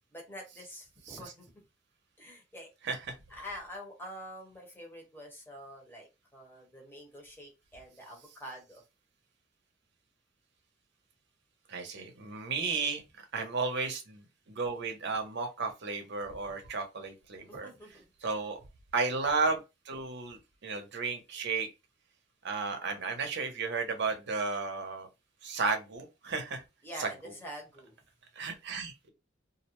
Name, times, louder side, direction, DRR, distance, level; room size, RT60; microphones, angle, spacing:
voice 1, 0.1-1.5 2.2-2.7 3.3-8.8 12.5-12.9 17.5-18.0 26.8-27.9, equal, 10° left, 0.9 m, -46 dB
voice 2, 2.8-3.1 11.7-13.0 13.3-17.7 18.2-18.6 18.9-19.6 19.9-21.7 22.4-25.1 25.4-26.6 27.0-27.1 28.4-29.1, right 4 dB, 65° right, 0.7 m, -33 dB
2.5 x 2.1 x 2.9 m
head